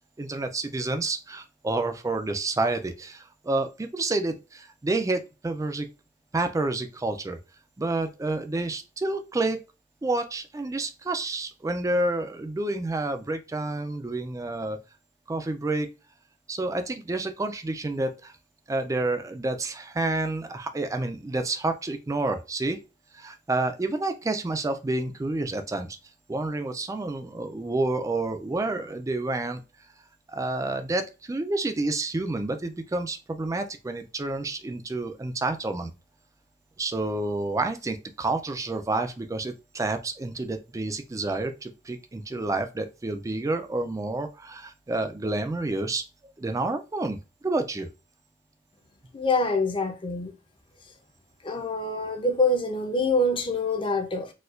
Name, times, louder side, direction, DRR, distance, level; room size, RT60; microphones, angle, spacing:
voice 1, 0.2-5.9 6.3-7.4 7.8-9.6 10.0-14.8 15.3-15.9 16.5-18.3 18.7-22.8 23.1-26.0 26.3-29.6 30.3-35.9 36.8-46.0 46.4-47.2 47.4-47.9, right 2 dB, 15° right, 0.3 m, -29 dB
voice 2, 49.1-50.3 51.4-54.3, left 2 dB, 25° left, 0.6 m, -25 dB
4.1 x 2.3 x 2.4 m
head